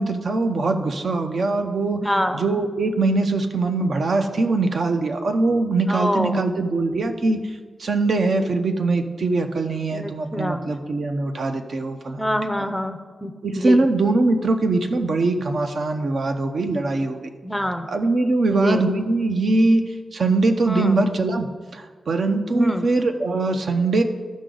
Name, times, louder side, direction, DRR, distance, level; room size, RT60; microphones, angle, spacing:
voice 1, 0.0-2.1 2.3-7.4 7.8-12.2 13.4-17.2 17.9-24.0, right 3 dB, 65° right, 6 dB, 0.7 m, -22 dB
voice 2, 1.9-2.4 5.9-6.4 9.9-10.7 12.2-13.9 17.4-17.9 18.5-18.9 20.6-21.0 22.5-22.9, equal, ahead, 8 dB, 0.5 m, -25 dB
13.5 x 5.0 x 3.8 m, 1.5 s
wide cardioid pair, 115°, 0 cm